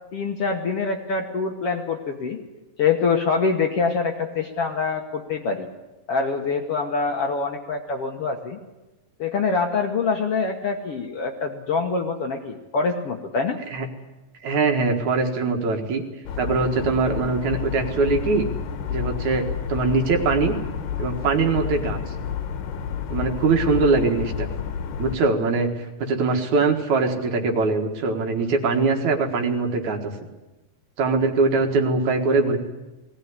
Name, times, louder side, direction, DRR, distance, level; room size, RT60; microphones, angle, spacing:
voice 1, 0.1-2.4 2.8-5.7 6.1-8.6 9.2-13.6, left 4 dB, 55° left, 3 dB, 1.8 m, -25 dB
voice 2, 14.4-16.0 16.4-18.5 18.9-20.6 21.0-22.1 23.1-24.5 25.0-30.1 31.0-32.6, right 4 dB, 60° right, 4 dB, 3.0 m, -22 dB
sound 1, 16.3-25.2, left 8 dB, 80° left, 3.0 m, -30 dB
20.0 x 17.5 x 9.7 m, 1.1 s
omnidirectional pair, 3.9 m